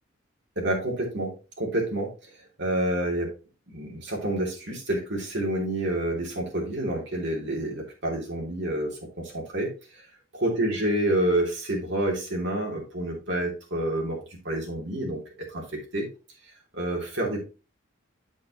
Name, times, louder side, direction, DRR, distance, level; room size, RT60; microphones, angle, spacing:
voice 1, 0.5-2.3 2.6-3.3 3.7-10.1 10.3-15.2 15.5-16.1 16.7-17.4, right 1 dB, 60° right, -1 dB, 3.2 m, -28 dB
8.5 x 6.6 x 3.1 m, 0.31 s
head